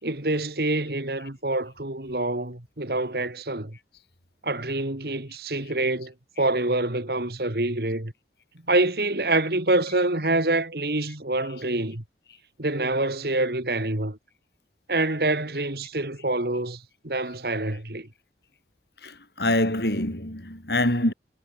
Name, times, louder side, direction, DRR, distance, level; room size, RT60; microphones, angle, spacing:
voice 1, 0.0-3.8 4.4-8.1 8.7-12.0 12.6-14.2 14.9-18.1, right 2 dB, 60° right, 2.5 m, -26 dB
voice 2, 19.0-21.1, left 1 dB, 70° left, 6.3 m, -25 dB
head